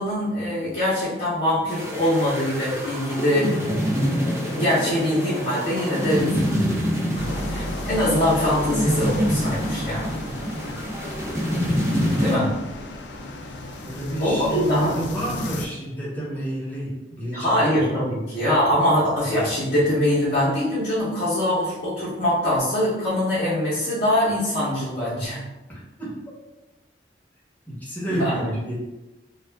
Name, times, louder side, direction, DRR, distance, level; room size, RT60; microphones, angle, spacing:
voice 1, 0.0-3.6 4.5-6.7 7.1-7.2 7.5-10.1 12.2-12.5 14.2-15.0 17.3-25.4 28.2-28.5, left 1 dB, 50° left, -10 dB, 0.8 m, -23 dB
sound 1, 1.7-12.3, equal, 15° right, 0.5 m, -26 dB
sound 2, 7.1-15.7, left 2 dB, 70° left, 0.4 m, -34 dB
voice 2, 12.2-12.7 13.8-17.6 17.9-18.0 25.7-26.2 27.7-28.8, right 1 dB, 10° left, -7 dB, 0.9 m, -30 dB
2.4 x 2.3 x 3.3 m, 1.0 s
head